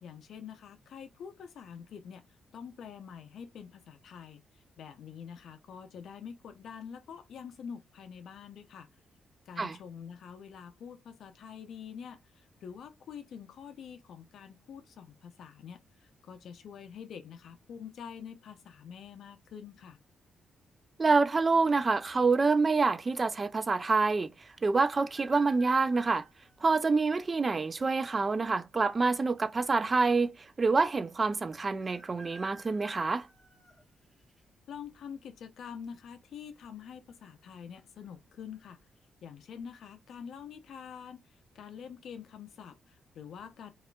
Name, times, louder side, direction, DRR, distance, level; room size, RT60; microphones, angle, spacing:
voice 1, 0.0-2.3 2.5-4.4 4.8-8.9 9.5-20.0 34.7-38.8 39.2-43.7, left 7 dB, 70° left, 0.6 m, -46 dB
voice 2, 21.0-24.3 24.6-26.2 26.6-33.3, right 4 dB, 30° right, 0.3 m, -27 dB
sound 1, 24.8-26.8 27.5-27.6 28.7-29.3 29.6-29.7 29.9-30.0 31.8-34.4 34.9-35.3 36.5-36.8 37.1-37.2 37.7-38.1 38.6-38.7, right 2 dB, ahead, 1.2 m, -53 dB
4.2 x 2.4 x 2.2 m
cardioid pair, 120°, 0 cm